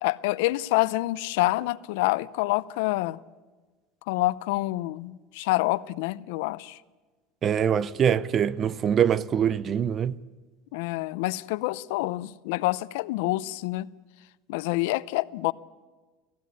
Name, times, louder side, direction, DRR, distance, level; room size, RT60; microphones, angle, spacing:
voice 1, 0.0-3.2 4.1-6.8 10.7-13.9 14.5-15.5, left 19 dB, 75° left, 0.6 m, -27 dB
voice 2, 7.4-10.2, right 8 dB, 30° right, 0.6 m, -24 dB
18.0 x 15.5 x 9.4 m
supercardioid pair, 145°, 0 cm